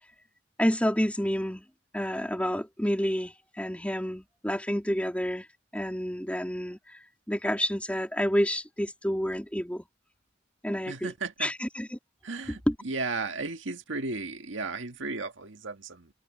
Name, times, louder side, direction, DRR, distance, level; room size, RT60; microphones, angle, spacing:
voice 1, 0.6-1.6 1.9-5.4 5.7-6.8 7.3-9.9 10.6-11.1 11.4-12.0 12.5-12.7, equal, 5° left, 3.0 m, -29 dB
voice 2, 10.9-11.5 12.2-16.1, right 3 dB, 80° right, 1.8 m, -35 dB
head